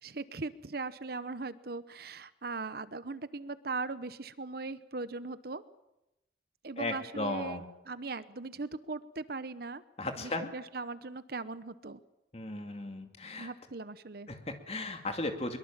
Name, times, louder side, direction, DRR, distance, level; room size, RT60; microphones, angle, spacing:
voice 1, 0.0-5.6 6.6-9.8 10.2-12.0 13.4-14.3, right 3 dB, 55° right, 14 dB, 0.9 m, -39 dB
voice 2, 6.8-7.7 10.0-10.5 12.3-13.5 14.3-15.6, left 2 dB, 35° left, 6 dB, 2.5 m, -36 dB
22.5 x 22.5 x 7.5 m, 0.91 s
head